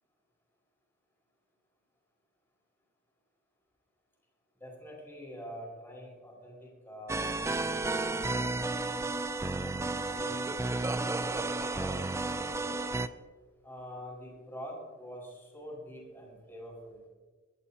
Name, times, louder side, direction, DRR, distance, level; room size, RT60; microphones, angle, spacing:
voice 1, 4.6-8.5 9.3-9.8 10.1-10.6 11.1-12.9 13.6-17.0, equal, 10° left, -3 dB, 5.0 m, -46 dB
sound 1, 7.1-13.1, right 2 dB, 15° right, 0.4 m, -32 dB
24.0 x 11.5 x 2.8 m, 1.5 s
head